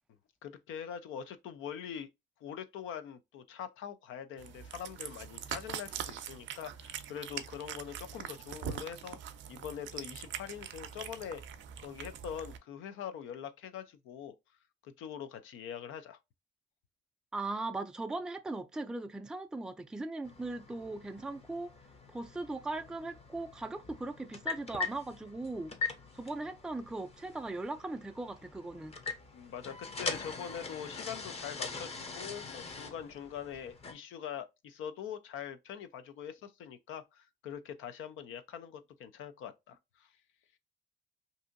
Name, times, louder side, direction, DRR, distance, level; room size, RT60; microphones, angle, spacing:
voice 1, 0.4-2.1 2.4-9.2 9.5-11.4 11.8-14.3 14.8-16.2 29.3-40.1, left 8 dB, 90° left, 0.5 m, -43 dB
Cat, 4.4-12.6, right 9 dB, 70° right, 0.4 m, -43 dB
voice 2, 17.3-21.7 22.1-25.7 26.1-28.9, right 2 dB, 5° right, 0.3 m, -39 dB
sound 1, 20.2-33.9, left 4 dB, 30° left, 0.6 m, -42 dB
2.7 x 2.6 x 2.4 m
cardioid pair, 90°, 20 cm